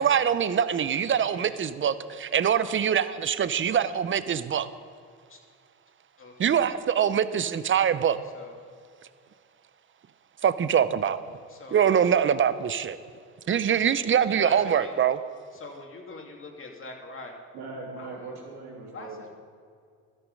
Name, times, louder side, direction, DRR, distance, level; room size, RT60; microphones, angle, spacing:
voice 1, 0.0-4.7 6.4-8.2 10.4-11.2 11.7-13.0 13.5-15.2, right 8 dB, 35° right, 14 dB, 0.7 m, -24 dB
voice 2, 1.2-1.6 3.7-3.8 5.3-5.4 6.2-6.7 8.3-8.6 11.5-12.0 14.2-14.9 15.5-17.4 18.0-18.5 18.9-19.3, left 3 dB, 35° left, 1 dB, 2.4 m, -43 dB
voice 3, 17.5-19.3, right 3 dB, 85° right, -3 dB, 3.6 m, -40 dB
12.5 x 11.5 x 5.4 m, 2.2 s
supercardioid pair, 75°, 37 cm